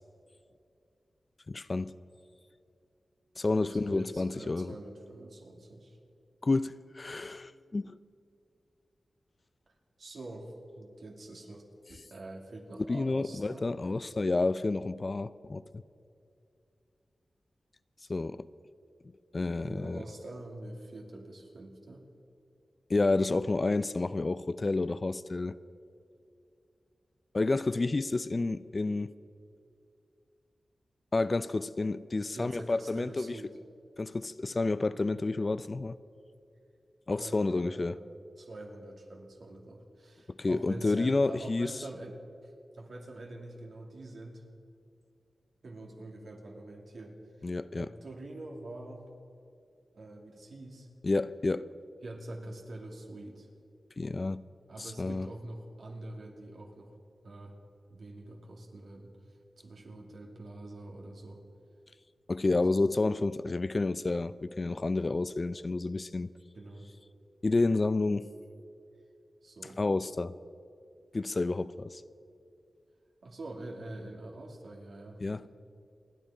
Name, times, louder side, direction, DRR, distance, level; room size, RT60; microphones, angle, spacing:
voice 1, 1.5-2.0 3.4-4.7 6.4-8.0 12.9-15.8 18.1-18.5 19.3-20.0 22.9-25.6 27.3-29.1 31.1-33.4 34.0-36.0 37.1-38.0 40.3-41.7 47.4-47.9 51.0-51.7 54.0-54.5 54.8-55.3 62.3-66.3 67.4-68.3 69.8-70.3 71.1-72.0 75.2-75.4, left 3 dB, 45° left, 0.5 m, -30 dB
voice 2, 3.6-6.0 10.0-13.7 19.6-22.0 32.3-33.5 37.2-38.1 38.4-44.4 45.6-49.1 49.9-50.9 52.0-53.5 54.7-56.9 57.2-57.6 57.9-59.1 59.6-61.4 62.5-62.8 66.5-66.9 69.4-69.8 73.2-75.5, right 2 dB, 75° right, 2.6 m, -45 dB
28.5 x 10.0 x 4.9 m
cardioid pair, 60°, 0 cm